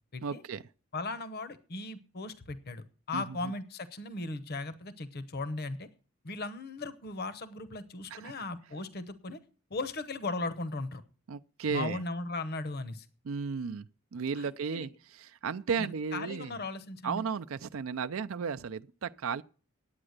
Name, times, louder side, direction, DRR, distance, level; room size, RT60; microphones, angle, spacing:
voice 1, 0.2-0.6 3.1-3.5 8.1-8.3 11.3-12.0 13.2-16.5 17.0-19.4, right 6 dB, 75° right, 0.5 m, -35 dB
voice 2, 0.9-5.9 6.2-9.4 9.7-11.0 11.7-13.1 14.4-14.9 15.8-17.2, left 3 dB, 50° left, 0.8 m, -37 dB
9.7 x 8.7 x 6.5 m
head